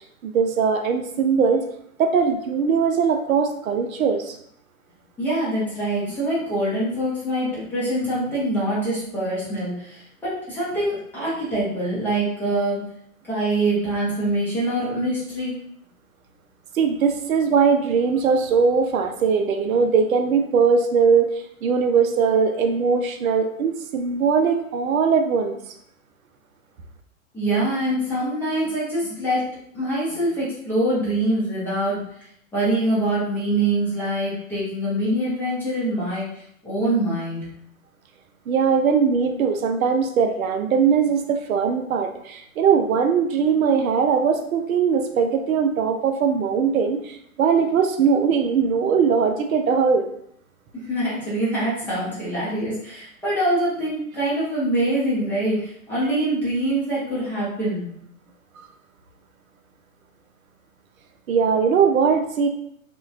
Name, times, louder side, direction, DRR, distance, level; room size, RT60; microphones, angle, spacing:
voice 1, 0.2-1.7 2.0-4.4 16.7-25.6 38.5-50.1 61.3-62.5, right 6 dB, 70° right, 6 dB, 0.5 m, -20 dB
voice 2, 5.2-12.8 13.2-15.5 27.3-29.5 29.7-32.0 32.5-37.4 50.8-57.9, right 1 dB, 5° left, -10 dB, 0.5 m, -24 dB
3.0 x 2.1 x 2.3 m, 0.70 s
hypercardioid pair, 120°, 43 cm